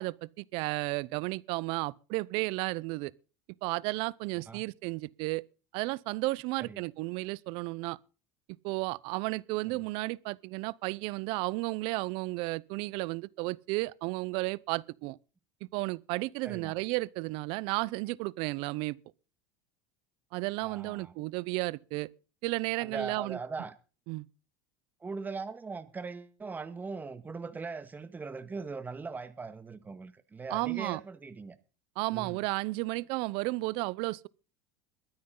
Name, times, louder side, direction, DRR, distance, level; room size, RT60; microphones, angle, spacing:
voice 1, 0.0-3.1 3.6-5.4 5.7-8.0 8.6-15.2 15.7-19.0 20.3-22.1 22.4-23.4 24.1-24.3 30.5-31.0 32.0-34.3, right 23 dB, 65° right, 0.7 m, -33 dB
voice 2, 16.4-16.8 20.6-21.1 22.8-23.7 25.0-31.5 32.1-32.4, right 4 dB, 20° right, 1.7 m, -40 dB
22.5 x 9.5 x 3.9 m
supercardioid pair, 105°, 10 cm